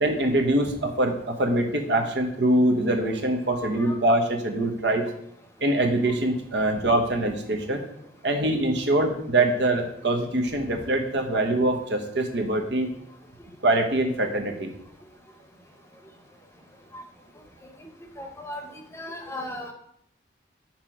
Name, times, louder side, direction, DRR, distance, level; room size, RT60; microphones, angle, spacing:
voice 1, 0.0-5.0 5.6-7.8 8.2-12.9 13.6-14.7, right 1 dB, 75° right, 4 dB, 1.1 m, -24 dB
voice 2, 3.6-4.0 16.9-17.0 18.2-19.7, left 1 dB, 15° left, 4 dB, 0.8 m, -37 dB
6.0 x 4.5 x 6.0 m, 0.71 s
head